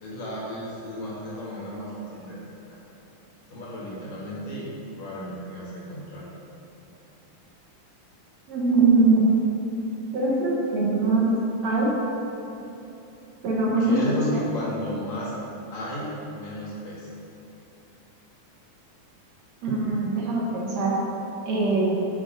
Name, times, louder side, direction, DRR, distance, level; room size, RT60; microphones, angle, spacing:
voice 1, 0.0-2.4 2.7-2.8 3.5-4.7 5.0-6.3 13.6-15.3 15.7-17.1, left 1 dB, 60° left, -7 dB, 3.2 m, -33 dB
voice 2, 8.5-9.3 10.1-11.3 11.6-11.9 13.4-14.0 14.3-14.4 19.6-21.0 21.5-21.9, right 3 dB, 65° right, -4 dB, 2.5 m, -22 dB
8.5 x 6.9 x 5.1 m, 3.0 s
omnidirectional pair, 3.6 m